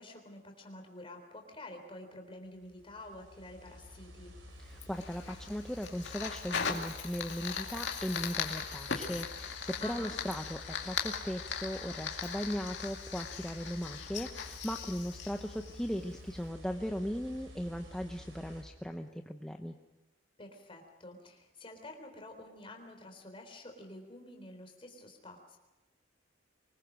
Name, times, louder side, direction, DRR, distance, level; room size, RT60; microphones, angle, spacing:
voice 1, 0.0-4.3 9.8-10.1 20.4-25.6, left 1 dB, 30° left, 3 dB, 3.7 m, -49 dB
sound 1, 2.6-18.6, left 1 dB, 85° right, 4.7 m, -51 dB
voice 2, 4.6-19.7, equal, 5° left, 3 dB, 0.8 m, -38 dB
Fire, 4.8-16.2, left 6 dB, 65° left, 2.3 m, -39 dB
24.0 x 21.0 x 6.3 m, 1.0 s
head